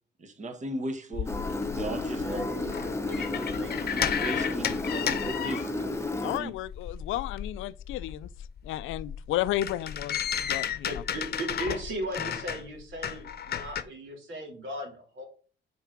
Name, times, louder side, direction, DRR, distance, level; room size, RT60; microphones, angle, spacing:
voice 1, 0.2-1.3 1.8-2.4 4.0-4.6 4.9-6.0 6.4-6.5, right 1 dB, 35° right, 1.4 m, -36 dB
sound 1, 1.1-6.1 6.4-13.8, left 8 dB, 50° left, 0.8 m, -34 dB
Engine, 1.3-6.4, left 2 dB, 15° left, 0.9 m, -32 dB
voice 2, 2.2-4.6 10.8-15.2, right 1 dB, 75° right, 3.0 m, -38 dB
voice 3, 6.2-8.3 8.6-11.0, left 14 dB, 85° left, 0.4 m, -33 dB
5.8 x 4.8 x 6.0 m
cardioid pair, 90°, 20 cm